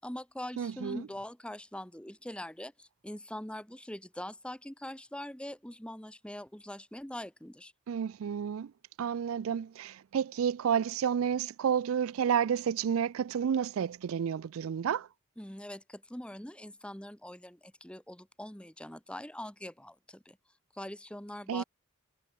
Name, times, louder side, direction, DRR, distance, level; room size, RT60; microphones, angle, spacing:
voice 1, 0.0-7.7 15.4-20.4 20.7-21.6, left 1 dB, 5° left, 1.3 m, -43 dB
voice 2, 0.6-1.0 7.9-8.7 9.0-15.1 21.5-21.6, right 8 dB, 80° right, 0.4 m, -30 dB
head